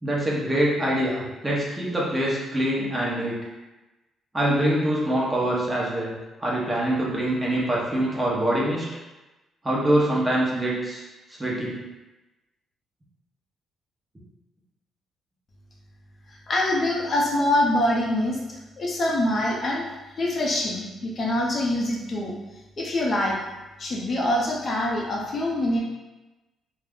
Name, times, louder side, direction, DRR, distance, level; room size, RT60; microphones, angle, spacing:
voice 1, 0.0-3.4 4.3-6.1 6.4-8.9 9.6-11.0 11.4-11.8, right 1 dB, 15° right, -5 dB, 0.8 m, -24 dB
voice 2, 16.5-19.9 20.2-22.3 22.8-23.4 23.8-25.8, left 1 dB, 45° left, -3 dB, 0.5 m, -24 dB
2.3 x 2.1 x 3.5 m, 1.1 s
cardioid pair, 90°, 0 cm